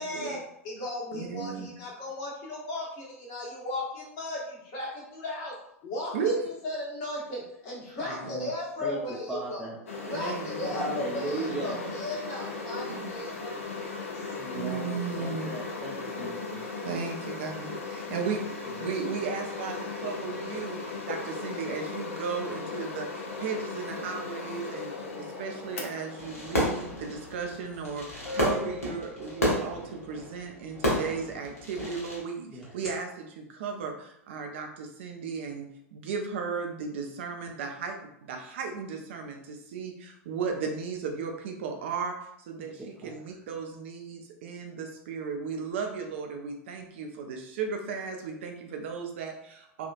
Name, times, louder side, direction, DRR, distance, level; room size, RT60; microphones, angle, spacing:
voice 1, 0.0-5.6 5.8-9.7 10.1-14.3, left 2 dB, 40° left, -4 dB, 1.3 m, -36 dB
voice 2, 1.1-1.7 6.1-6.4 10.1-10.9 11.4-11.8 12.9-13.1 14.5-15.5 16.8-18.4 18.8-42.2 42.5-49.9, right 5 dB, 50° right, 3 dB, 0.6 m, -35 dB
voice 3, 8.0-8.5 8.8-9.8 10.6-11.8 14.4-16.7 18.6-18.8 32.5-32.7 42.6-43.2, right 2 dB, 5° right, -7 dB, 0.6 m, -38 dB
sound 1, 9.9-28.3, left 3 dB, 60° left, 0.6 m, -37 dB
Fireworks, 26.2-32.2, equal, 75° left, 1.1 m, -31 dB
sound 2, 27.7-27.8 28.2-30.0 32.6-32.9, left 3 dB, 10° left, 1.0 m, -39 dB
3.5 x 2.4 x 2.4 m, 0.75 s
figure-of-eight pair, 95°, 8 cm